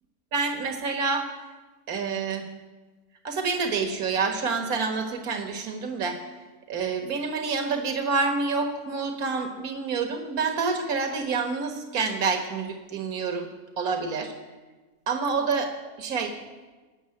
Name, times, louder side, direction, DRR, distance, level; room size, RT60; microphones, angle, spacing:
voice 1, 0.3-1.3 1.9-2.5 3.2-6.2 6.7-13.5 13.8-14.3 15.1-15.7 16.0-16.3, right 4 dB, 75° right, 4 dB, 1.9 m, -27 dB
17.5 x 8.1 x 9.7 m, 1.3 s
omnidirectional pair, 1.5 m